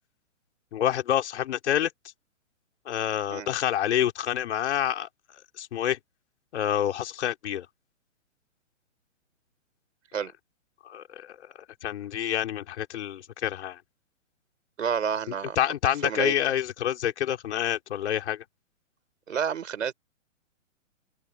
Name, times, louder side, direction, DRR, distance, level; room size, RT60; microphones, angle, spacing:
voice 1, 0.7-1.9 2.9-5.1 5.6-6.0 6.5-7.7 10.8-11.4 11.8-13.8 15.6-18.4, left 10 dB, 60° left, 4.3 m, -27 dB
voice 2, 14.8-15.6 16.0-16.3 19.3-19.9, right 7 dB, 75° right, 5.6 m, -29 dB
open air
hypercardioid pair, 135°, 39 cm